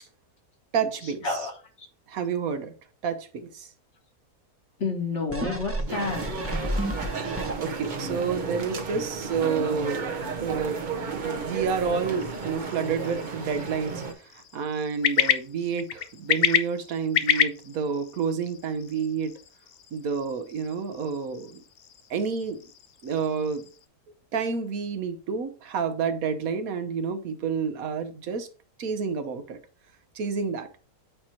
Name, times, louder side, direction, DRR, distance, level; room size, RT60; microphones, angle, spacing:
voice 1, 0.7-1.5 2.1-2.7 3.0-3.7 7.6-10.8 11.2-19.3 19.9-21.6 22.1-22.6 23.0-23.6 24.3-28.5 28.8-29.6 30.1-30.7, right 6 dB, 70° right, 9 dB, 1.2 m, -29 dB
voice 2, 4.8-6.3, left 3 dB, 50° left, 2 dB, 1.6 m, -29 dB
sound 1, 5.3-8.0 8.5-8.6, right 1 dB, 15° right, 0.6 m, -31 dB
sound 2, 5.9-14.1, right 4 dB, 40° right, 0.8 m, -33 dB
sound 3, 12.2-23.9, left 9 dB, 70° left, 0.5 m, -31 dB
8.6 x 2.9 x 4.3 m, 0.37 s
omnidirectional pair, 1.6 m